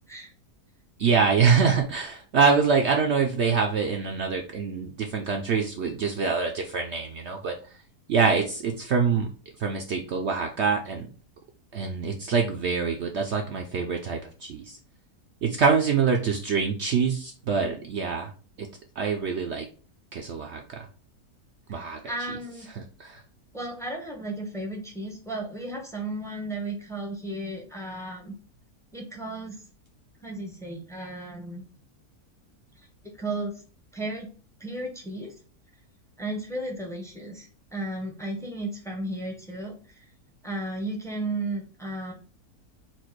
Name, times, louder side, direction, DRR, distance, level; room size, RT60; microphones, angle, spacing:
voice 1, 1.0-7.7 8.1-9.3 9.6-11.1 11.7-14.8 15.4-18.3 18.6-18.7 19.0-19.7 20.1-20.9 21.7-22.0 22.7-23.2, right 5 dB, 65° right, 3 dB, 0.7 m, -25 dB
voice 2, 21.7-22.7 23.5-28.3 28.9-29.6 30.2-31.6 33.0-33.5 33.9-34.3 34.6-35.3 36.2-40.0 40.4-42.1, right 2 dB, 5° left, 2 dB, 0.5 m, -34 dB
4.4 x 2.4 x 4.4 m, 0.39 s
omnidirectional pair, 1.6 m